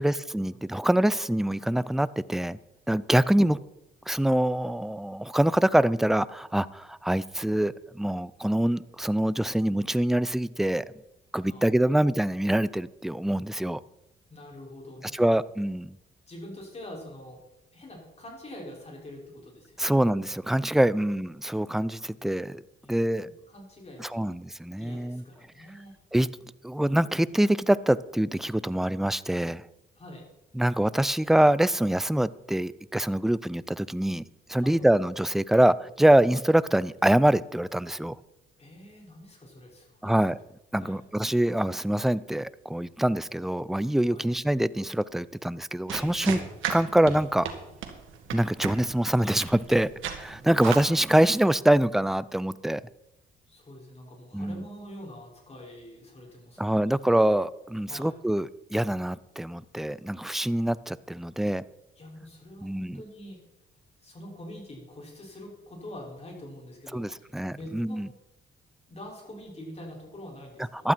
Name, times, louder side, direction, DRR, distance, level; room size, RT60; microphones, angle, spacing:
voice 1, 0.0-2.6 2.9-3.6 4.1-10.9 11.3-13.8 15.1-16.0 19.8-22.6 22.9-23.3 24.0-25.2 26.1-26.3 26.6-29.7 30.6-34.2 34.5-38.2 40.0-40.4 40.7-46.4 46.7-47.5 48.3-52.8 54.3-54.6 56.6-61.6 62.6-63.0 66.9-68.1 70.8-70.9, right 1 dB, ahead, 18 dB, 0.4 m, -25 dB
voice 2, 11.4-12.0 14.3-15.4 16.3-17.4 17.7-20.0 20.9-21.0 22.8-24.3 24.8-26.0 30.0-30.2 34.6-34.9 38.6-40.3 40.7-41.0 44.1-44.2 50.4-50.7 53.5-56.9 57.9-58.1 62.0-63.4 64.0-68.0 68.9-70.9, left 1 dB, 30° left, -1 dB, 5.9 m, -45 dB
sound 1, 45.9-51.3, right 8 dB, 80° right, 2.0 m, -36 dB
14.5 x 12.0 x 4.5 m, 0.88 s
cardioid pair, 90°, 20 cm